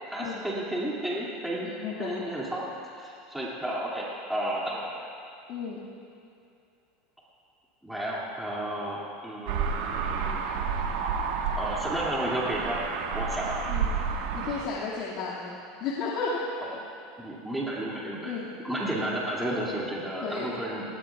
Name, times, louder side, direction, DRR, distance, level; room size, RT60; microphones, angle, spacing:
voice 1, 0.1-1.7 2.0-2.6 2.9-4.9 7.8-10.5 10.9-11.0 11.6-12.8 13.1-13.6 17.2-18.3 18.6-20.8, right 1 dB, 5° right, -6 dB, 2.4 m, -32 dB
voice 2, 1.8-2.2 5.5-5.9 13.7-13.9 14.3-16.4 18.2-18.5 20.2-20.5, left 5 dB, 55° left, -6 dB, 2.1 m, -33 dB
sound 1, 9.5-14.6, right 6 dB, 75° right, 1.4 m, -30 dB
20.0 x 17.5 x 2.4 m, 2.6 s
supercardioid pair, 125°, 0 cm